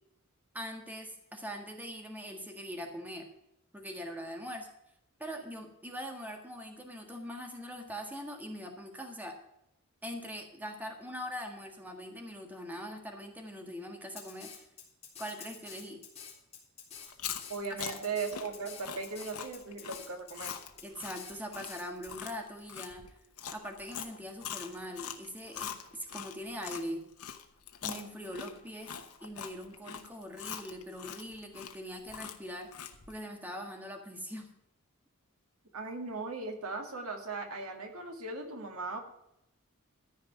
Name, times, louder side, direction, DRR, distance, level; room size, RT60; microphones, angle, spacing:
voice 1, 0.5-3.3 3.7-4.7 5.2-9.3 10.0-14.6 15.2-16.0 17.9-18.0 20.8-23.0 23.5-27.0 27.8-32.7 33.1-34.5, equal, 10° right, 3 dB, 1.6 m, -42 dB
Drum kit, 14.2-22.1, left 7 dB, 30° left, 3.6 m, -48 dB
Chewing mastication, 17.0-26.8 27.2-33.1, left 8 dB, 85° left, 1.1 m, -42 dB
voice 2, 17.5-20.5 35.7-39.0, right 4 dB, 80° right, 4 dB, 2.0 m, -38 dB
13.5 x 5.2 x 9.2 m, 0.82 s
head